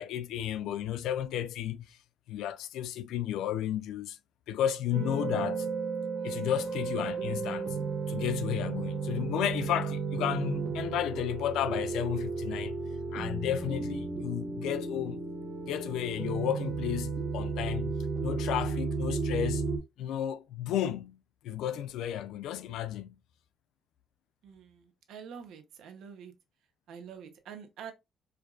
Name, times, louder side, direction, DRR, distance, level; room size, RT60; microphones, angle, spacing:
voice 1, 0.0-2.0 2.3-4.2 4.5-5.7 6.2-7.8 8.1-12.8 13.1-15.2 15.7-17.9 18.2-19.6 20.0-21.2 21.4-23.2, left 11 dB, 85° left, 0.4 m, -33 dB
sound 1, 4.9-19.8, right 4 dB, 60° right, 1.1 m, -33 dB
voice 2, 24.4-26.3 26.9-27.9, right 7 dB, 80° right, 0.7 m, -46 dB
4.5 x 2.3 x 2.3 m
cardioid pair, 90°, 0 cm